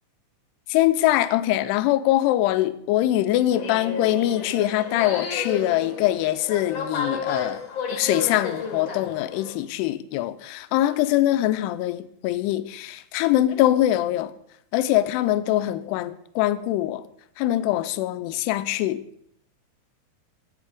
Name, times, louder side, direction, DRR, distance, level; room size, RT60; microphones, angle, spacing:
voice 1, 0.7-7.6 7.9-14.3 14.7-17.1 17.4-19.0, left 14 dB, 85° left, 2.5 m, -23 dB
sound 1, 3.5-9.6, left 5 dB, 60° left, 1.3 m, -32 dB
11.5 x 8.8 x 4.9 m
omnidirectional pair, 5.1 m